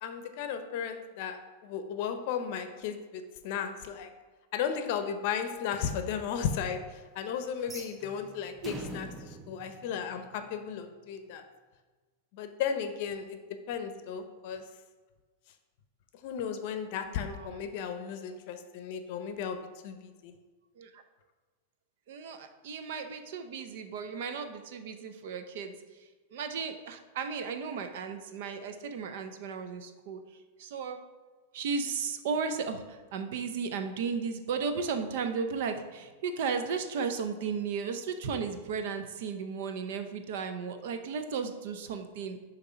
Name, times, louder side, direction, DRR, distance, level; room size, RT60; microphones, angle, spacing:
voice 1, 0.0-4.1 4.5-11.4 12.3-13.4 13.7-14.6 16.2-19.6 19.8-20.3, left 7 dB, 55° left, 8 dB, 0.6 m, -35 dB
sound 1, 7.6-10.7, right 2 dB, 15° right, 0.5 m, -45 dB
voice 2, 8.6-9.0 17.1-17.6 20.8-21.0 22.1-25.8 26.3-30.2 30.6-31.0 31.5-42.4, right 5 dB, 65° right, 8 dB, 0.6 m, -35 dB
6.7 x 2.9 x 5.1 m, 1.3 s
hypercardioid pair, 135°, 0 cm